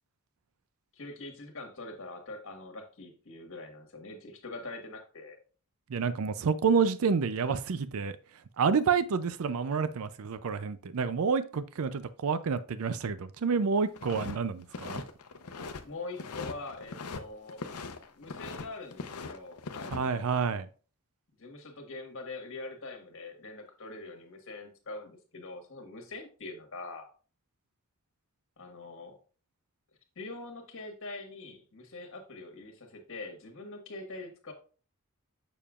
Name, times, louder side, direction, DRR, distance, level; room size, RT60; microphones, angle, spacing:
voice 1, 0.9-5.4 15.8-17.6 18.1-20.2 21.4-27.1 28.6-29.2 30.1-34.5, left 2 dB, 60° left, 1.6 m, -43 dB
voice 2, 5.9-8.2 8.6-15.0 19.9-20.7, right 5 dB, 70° right, 0.5 m, -29 dB
sound 1, 14.0-14.4 14.6-15.8 16.1-17.2 17.5-18.7 18.9-20.0, left 4 dB, 80° left, 0.7 m, -40 dB
7.1 x 6.7 x 2.4 m
head